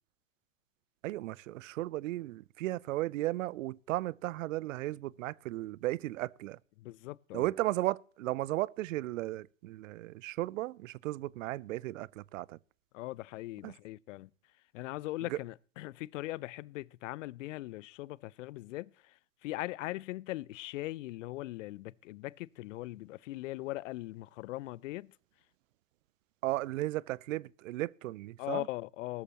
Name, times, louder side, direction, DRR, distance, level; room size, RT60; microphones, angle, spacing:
voice 1, 1.0-6.6 7.3-12.6 13.6-13.7 15.3-15.4 26.4-28.7, right 17 dB, 80° right, 0.5 m, -35 dB
voice 2, 6.8-7.5 12.9-14.3 14.7-25.1 28.4-29.2, left 18 dB, 75° left, 0.5 m, -40 dB
18.5 x 13.0 x 2.9 m
hypercardioid pair, 75°, 38 cm